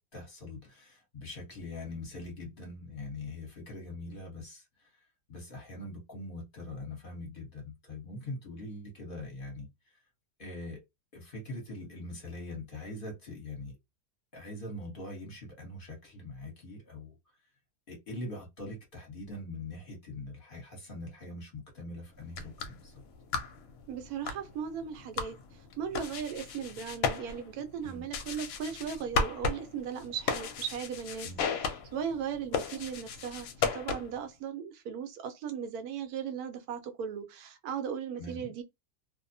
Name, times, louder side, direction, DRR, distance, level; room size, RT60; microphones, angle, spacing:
voice 1, 0.1-5.0 5.3-10.0 10.4-10.8 11.1-13.7 14.3-17.1 17.9-23.0 27.8-28.0 31.2-31.4 38.2-38.5, left 2 dB, 40° left, 1.0 m, -42 dB
sound 1, 22.2-34.3, left 5 dB, 70° left, 0.9 m, -36 dB
voice 2, 23.9-38.6, right 7 dB, 75° right, 1.1 m, -37 dB
2.7 x 2.0 x 2.5 m
omnidirectional pair, 1.6 m